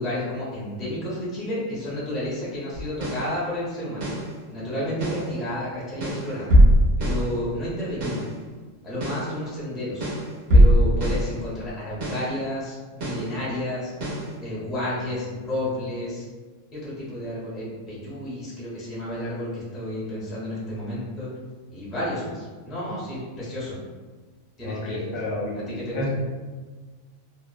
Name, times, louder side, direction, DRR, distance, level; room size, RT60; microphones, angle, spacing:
voice 1, 0.0-4.1 4.5-6.5 7.0-8.2 8.8-10.1 10.5-13.9 14.4-16.2 16.7-21.3 21.7-23.7 24.6-25.0 25.5-26.1, left 1 dB, ahead, -8 dB, 0.4 m, -31 dB
sound 1, 2.8-3.3 4.0-4.3 5.0-5.3 6.0-7.3 8.0-8.3 9.0-9.3 10.0-11.3 12.0-12.3 13.0-13.3 14.0-14.3, equal, 65° right, 1.0 m, -20 dB
voice 2, 24.6-26.1, left 2 dB, 55° left, -3 dB, 0.7 m, -31 dB
2.9 x 2.0 x 2.3 m, 1.4 s
omnidirectional pair, 1.4 m